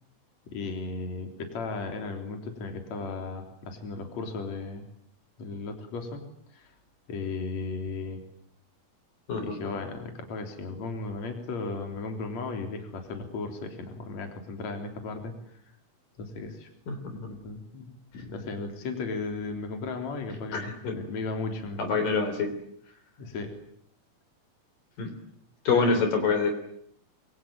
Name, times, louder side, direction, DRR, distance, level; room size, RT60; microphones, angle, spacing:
voice 1, 0.5-4.8 5.4-6.3 6.5-6.7 7.1-8.2 9.4-15.3 16.2-16.7 17.1-17.9 18.1-22.0 23.2-23.5 25.7-26.0, left 3 dB, 50° left, 4 dB, 4.7 m, -35 dB
voice 2, 16.9-17.3 20.5-20.9 21.8-22.5 25.0-25.1 25.6-26.5, left 4 dB, 65° left, 7 dB, 4.9 m, -26 dB
26.5 x 24.5 x 9.0 m, 0.69 s
omnidirectional pair, 4.1 m